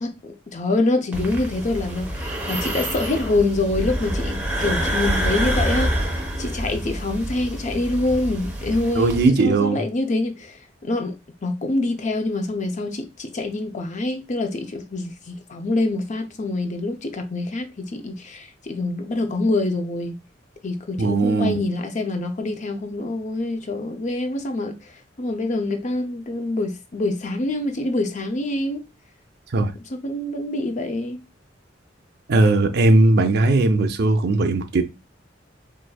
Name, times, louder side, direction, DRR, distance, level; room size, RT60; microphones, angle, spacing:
voice 1, 0.0-20.2 20.6-28.8 29.9-31.2, left 2 dB, 40° left, 0.5 m, -26 dB
sound 1, 1.1-9.2, equal, 10° right, 0.9 m, -27 dB
voice 2, 9.0-9.8 21.0-21.6 29.5-29.7 32.3-34.8, right 2 dB, 60° right, 0.5 m, -18 dB
4.6 x 2.6 x 2.3 m
head